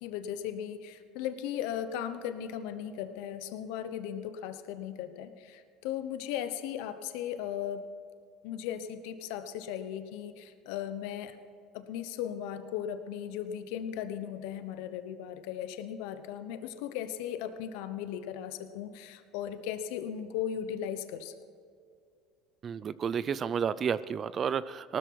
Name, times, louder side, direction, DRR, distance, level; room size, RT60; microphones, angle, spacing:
voice 1, 0.0-7.9 8.4-11.4 11.7-21.3, left 9 dB, 75° left, 10 dB, 1.0 m, -37 dB
voice 2, 22.6-25.0, right 7 dB, 35° right, 17 dB, 0.5 m, -31 dB
18.5 x 13.0 x 4.7 m, 2.3 s
supercardioid pair, 110°, 0 cm